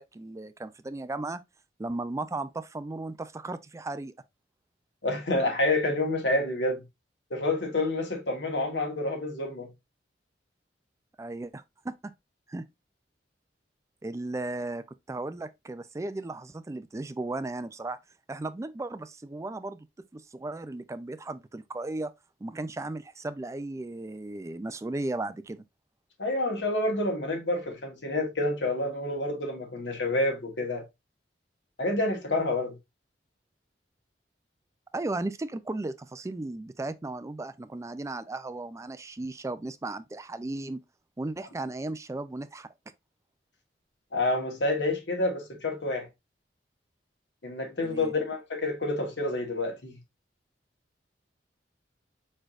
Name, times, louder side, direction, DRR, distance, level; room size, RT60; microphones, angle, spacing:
voice 1, 0.0-1.4 1.8-4.1 11.2-11.9 12.5-12.6 14.0-18.0 18.3-19.9 20.1-22.1 22.4-25.6 34.9-40.8 41.2-42.7 47.8-48.1, right 2 dB, 15° right, 0.3 m, -35 dB
voice 2, 5.0-6.8 7.3-9.7 26.2-30.8 31.8-32.8 44.1-46.1 47.4-50.0, left 2 dB, 80° left, 1.4 m, -28 dB
4.6 x 4.4 x 2.4 m
head